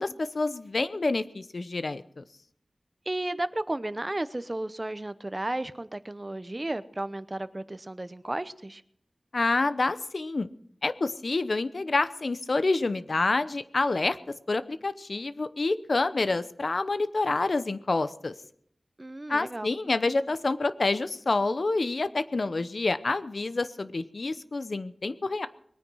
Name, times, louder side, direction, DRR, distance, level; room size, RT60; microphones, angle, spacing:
voice 1, 0.0-2.2 9.3-10.5 10.8-14.2 14.5-18.3 19.3-25.5, left 3 dB, 65° left, 13 dB, 0.8 m, -28 dB
voice 2, 3.1-8.8 19.0-19.7, right 1 dB, 30° right, 14 dB, 0.8 m, -33 dB
21.5 x 9.6 x 6.2 m, 0.66 s
wide cardioid pair, 70°, 0 cm